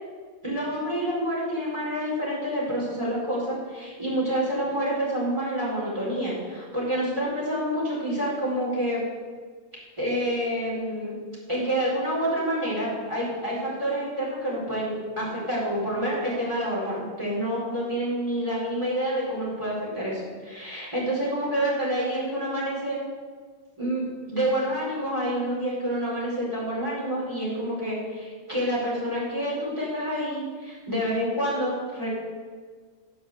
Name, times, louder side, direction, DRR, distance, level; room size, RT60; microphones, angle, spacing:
voice 1, 0.4-9.0 10.0-11.1 11.5-23.0 23.8-32.1, equal, 20° right, -8 dB, 4.7 m, -28 dB
15.5 x 7.3 x 7.8 m, 1.6 s
omnidirectional pair, 1.4 m